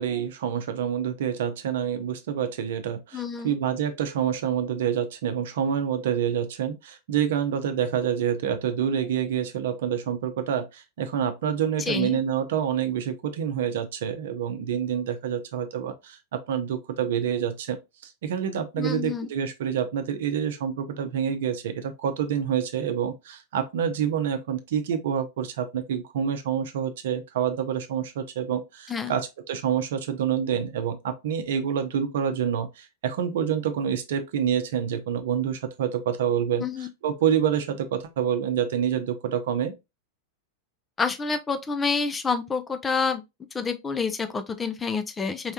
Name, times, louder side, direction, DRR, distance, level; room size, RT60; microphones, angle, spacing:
voice 1, 0.0-39.7, right 8 dB, 55° right, 0.8 m, -27 dB
voice 2, 3.1-3.6 11.9-12.2 18.8-19.3 28.9-29.2 36.6-36.9 41.0-43.2 43.5-45.5, left 5 dB, 15° left, 0.6 m, -28 dB
4.7 x 3.4 x 2.8 m
figure-of-eight pair, 90°, 0 cm